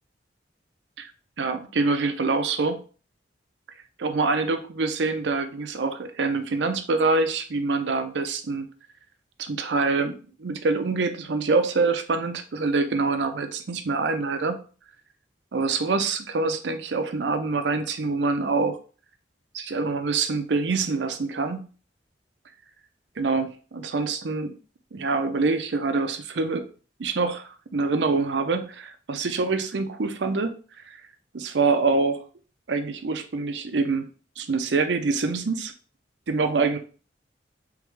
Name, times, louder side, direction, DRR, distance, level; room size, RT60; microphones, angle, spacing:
voice 1, 1.4-2.8 4.0-8.7 9.4-14.6 15.5-18.8 19.5-21.6 23.2-24.5 24.9-26.7 27.0-30.5 30.8-31.0 31.3-32.2 32.7-34.1 34.4-35.7 36.3-36.8, right 3 dB, 80° right, 8 dB, 0.6 m, -25 dB
3.6 x 3.4 x 3.2 m, 0.37 s
head